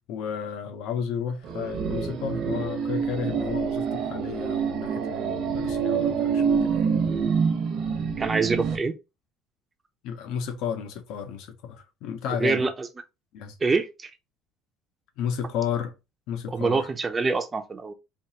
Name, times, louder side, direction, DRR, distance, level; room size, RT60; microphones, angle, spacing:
voice 1, 0.1-6.9 10.0-12.6 13.3-13.5 15.2-15.9 16.3-16.9, left 8 dB, 65° left, 0.9 m, -32 dB
sound 1, 1.4-8.8, right 6 dB, 55° right, 1.0 m, -26 dB
voice 2, 8.2-8.9 12.4-12.9 13.6-14.1 16.5-17.9, right 4 dB, 15° right, 0.6 m, -25 dB
4.5 x 2.8 x 2.9 m
cardioid pair, 160°, 0 cm